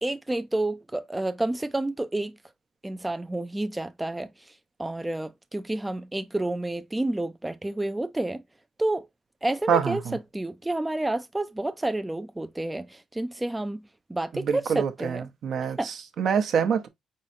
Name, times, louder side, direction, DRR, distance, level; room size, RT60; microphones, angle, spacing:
voice 1, 0.0-2.4 2.8-4.5 4.8-8.4 8.8-9.1 9.4-10.0 10.3-13.8 14.1-15.2 15.8-15.9, right 2 dB, 10° right, 0.3 m, -29 dB
voice 2, 9.7-10.2 14.3-16.9, right 7 dB, 65° right, 0.7 m, -26 dB
4.2 x 3.7 x 2.7 m
cardioid pair, 90°, 0 cm